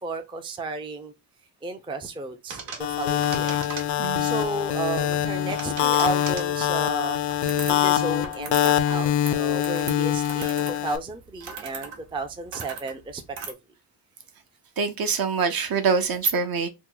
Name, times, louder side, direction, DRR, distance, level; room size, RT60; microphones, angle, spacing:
voice 1, 0.0-1.1 1.6-3.6 4.2-7.2 7.7-13.5, right 3 dB, 10° right, 0.4 m, -33 dB
sound 1, 2.5-4.3 5.1-6.6 7.3-7.9 8.2-8.8 9.1-13.5, right 5 dB, 85° right, 1.0 m, -39 dB
sound 2, 2.8-11.0, left 11 dB, 75° left, 0.6 m, -24 dB
voice 2, 4.0-4.3 14.8-16.7, right 5 dB, 55° right, 0.7 m, -24 dB
2.9 x 2.1 x 3.7 m
cardioid pair, 110°, 43 cm